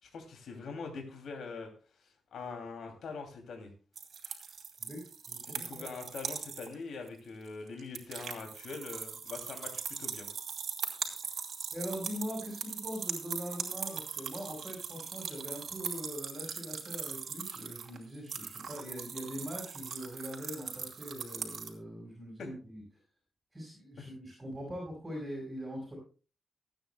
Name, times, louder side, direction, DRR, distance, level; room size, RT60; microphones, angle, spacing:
voice 1, 0.0-1.7 2.0-3.7 5.5-10.3 22.4-22.5, left 4 dB, 75° left, 3 dB, 2.6 m, -43 dB
sound 1, 4.0-6.7 7.1-7.2 7.5-21.7, right 6 dB, 65° right, 2.6 m, -40 dB
voice 2, 4.8-5.8 11.0-11.1 11.7-22.8 23.5-26.0, equal, 15° right, -2 dB, 5.2 m, -42 dB
24.5 x 9.2 x 2.2 m, 0.36 s
wide cardioid pair, 145°, 0 cm